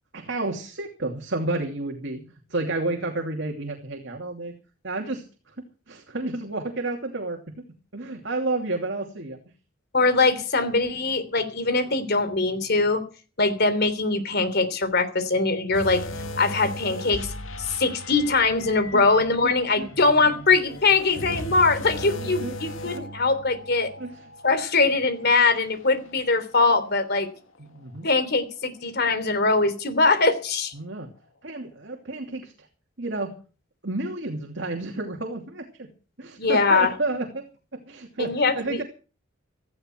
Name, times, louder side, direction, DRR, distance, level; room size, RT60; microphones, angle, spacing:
voice 1, 0.1-2.2 2.5-4.5 4.8-5.6 5.9-7.6 7.9-9.4 18.9-19.0 19.4-19.9 22.1-22.6 23.0-23.1 24.0-24.3 27.6-28.1 30.7-31.1 31.4-32.7 33.0-33.3 33.8-35.9 36.2-37.4 37.7-38.8, right 2 dB, 65° right, 2 dB, 2.8 m, -31 dB
voice 2, 9.9-13.0 13.4-16.0 16.4-17.3 17.6-23.9 24.4-27.3 28.0-30.7 36.4-36.9 38.2-38.8, left 3 dB, 55° left, 12 dB, 3.3 m, -22 dB
sound 1, 15.7-27.2 27.6-27.8 28.4-28.5, equal, 90° left, 1.9 m, -38 dB
17.0 x 14.5 x 4.6 m, 0.37 s
head